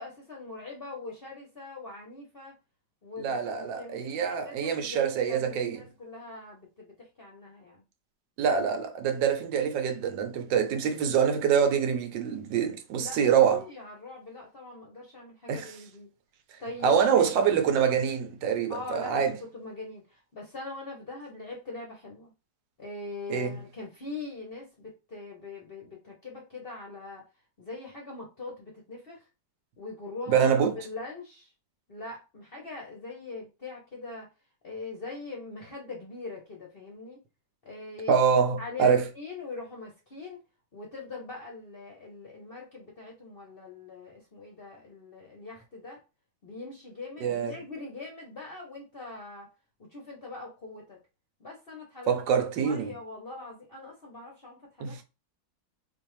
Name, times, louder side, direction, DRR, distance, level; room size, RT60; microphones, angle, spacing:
voice 1, 0.0-2.6 3.0-7.8 13.0-16.1 16.6-17.3 18.7-19.2 19.5-22.3 22.8-27.2 27.6-29.2 29.8-30.5 30.8-31.5 31.9-34.3 34.6-37.2 37.6-38.2 38.6-40.4 40.7-46.0 46.4-49.5 49.9-51.0 51.4-52.1 52.6-55.0, left 3 dB, 45° left, 0.8 m, -42 dB
voice 2, 3.2-5.8 8.4-13.6 15.5-15.8 16.8-19.4 23.3-23.6 30.3-30.8 38.1-39.1 47.2-47.6 52.1-52.9 54.8-55.0, right 7 dB, 75° right, 1.3 m, -25 dB
4.3 x 2.6 x 3.0 m
omnidirectional pair, 2.0 m